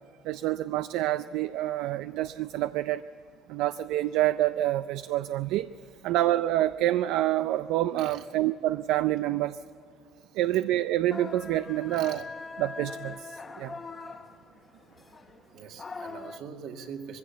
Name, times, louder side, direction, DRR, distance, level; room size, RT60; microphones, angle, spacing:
voice 1, 0.2-3.0 3.5-5.7 6.0-9.6 10.3-12.2 12.6-13.7, right 14 dB, 85° right, 12 dB, 0.4 m, -27 dB
sound 1, 11.1-16.4, left 4 dB, 20° left, 0.7 m, -42 dB
voice 2, 11.9-12.2 15.5-17.2, right 6 dB, 70° right, 3 dB, 2.0 m, -43 dB
21.0 x 16.0 x 8.2 m, 2.7 s
cardioid pair, 160°, 0 cm